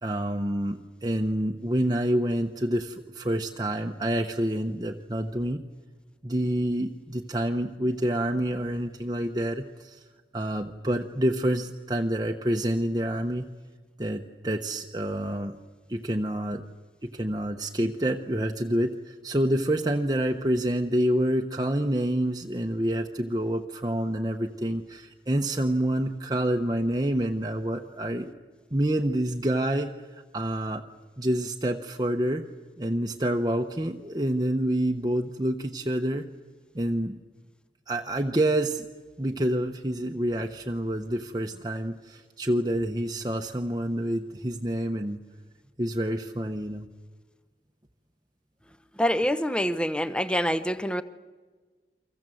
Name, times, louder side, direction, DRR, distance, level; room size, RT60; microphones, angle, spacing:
voice 1, 0.0-5.6 6.2-10.0 10.3-13.5 14.0-15.5 15.9-16.6 17.1-28.3 28.7-30.8 31.2-32.4 32.8-36.3 36.7-37.2 37.9-38.8 39.2-45.2 45.8-46.9, right 1 dB, 25° right, 3 dB, 1.0 m, -27 dB
voice 2, 49.0-51.0, equal, 5° left, 12 dB, 0.8 m, -26 dB
29.5 x 24.5 x 7.8 m, 1.4 s
head